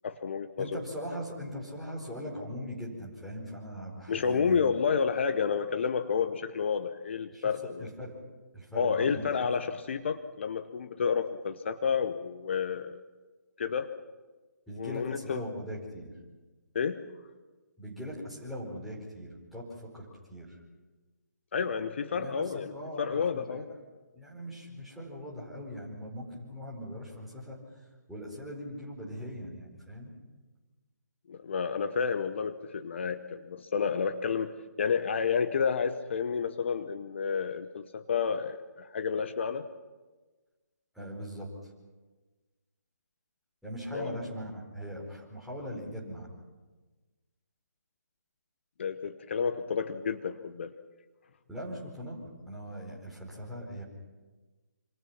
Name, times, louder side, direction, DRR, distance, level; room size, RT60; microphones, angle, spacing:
voice 1, 0.0-0.8 4.1-7.9 8.7-13.0 13.6-13.9 14.7-15.4 16.7-17.0 21.5-22.7 23.0-23.7 31.3-39.7 43.9-44.1 48.8-50.7, left 6 dB, 40° left, 9 dB, 1.0 m, -30 dB
voice 2, 0.6-4.6 7.3-7.5 7.8-8.1 8.5-9.2 14.7-16.1 17.8-20.6 22.1-23.8 24.1-27.6 28.1-30.1 40.9-41.7 43.6-46.3 51.5-52.2 52.5-53.8, equal, ahead, -7 dB, 4.8 m, -40 dB
27.0 x 26.0 x 6.0 m, 1.3 s
figure-of-eight pair, 145°, 10 cm